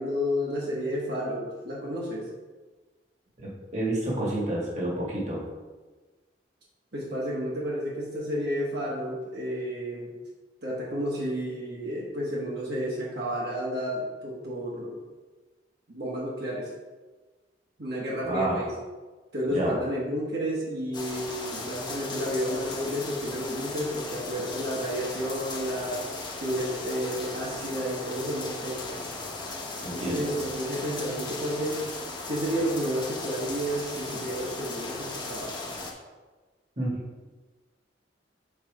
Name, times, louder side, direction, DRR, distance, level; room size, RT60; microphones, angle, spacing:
voice 1, 0.0-2.3 6.9-10.1 10.6-15.0 15.9-16.7 17.8-18.7 19.3-26.0 26.4-29.0 29.9-31.8 32.3-35.5, equal, 65° right, -5 dB, 1.5 m, -31 dB
voice 2, 3.4-5.4 18.2-18.6 19.5-19.8 29.8-30.4 36.8-37.0, right 1 dB, 40° right, -4 dB, 1.7 m, -29 dB
sound 1, 20.9-35.9, left 3 dB, 25° left, 0.9 m, -37 dB
6.0 x 4.1 x 4.8 m, 1.3 s
head